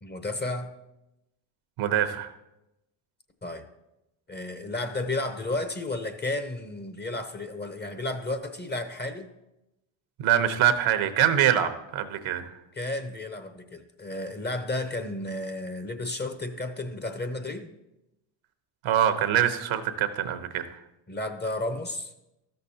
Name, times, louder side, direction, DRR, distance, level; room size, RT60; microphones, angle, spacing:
voice 1, 0.0-0.7 3.4-3.6 4.3-9.3 12.8-17.7 21.1-22.1, left 2 dB, 20° left, 8 dB, 0.8 m, -32 dB
voice 2, 1.8-2.3 10.2-12.5 18.8-20.8, right 10 dB, 70° right, 9 dB, 0.9 m, -24 dB
13.0 x 6.7 x 2.8 m, 0.92 s
supercardioid pair, 65°, 50 cm